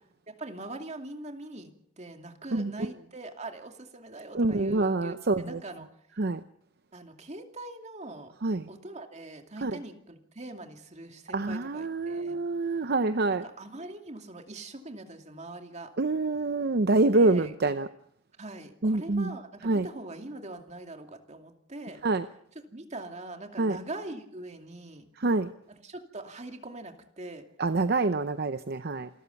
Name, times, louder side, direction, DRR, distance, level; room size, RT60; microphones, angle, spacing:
voice 1, 0.3-5.9 6.9-8.3 8.7-12.4 13.3-15.9 17.1-17.5 18.4-22.0 22.5-25.1 25.7-27.4, right 2 dB, 35° right, 4 dB, 2.5 m, -42 dB
voice 2, 4.3-5.6 6.2-6.4 8.4-8.7 9.6-9.8 11.3-13.4 16.0-17.9 18.8-19.3 19.6-19.9 22.0-22.3 23.6-23.8 25.2-25.5 27.6-29.1, right 2 dB, 55° right, 11 dB, 0.7 m, -26 dB
27.5 x 14.0 x 7.1 m, 0.71 s
head